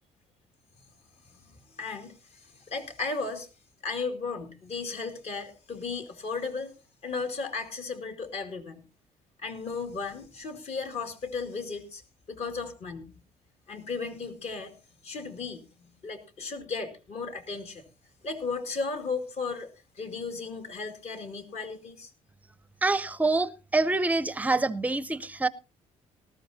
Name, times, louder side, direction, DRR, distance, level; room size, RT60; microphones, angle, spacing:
voice 1, 1.8-3.5 3.8-6.7 7.0-8.8 9.4-12.0 12.3-13.1 13.7-14.7 15.0-17.8 18.2-19.7 20.0-22.1, left 4 dB, 50° left, 2.2 m, -35 dB
voice 2, 22.8-25.5, right 3 dB, 10° right, 0.6 m, -26 dB
19.0 x 13.5 x 2.7 m
cardioid pair, 130°, 13 cm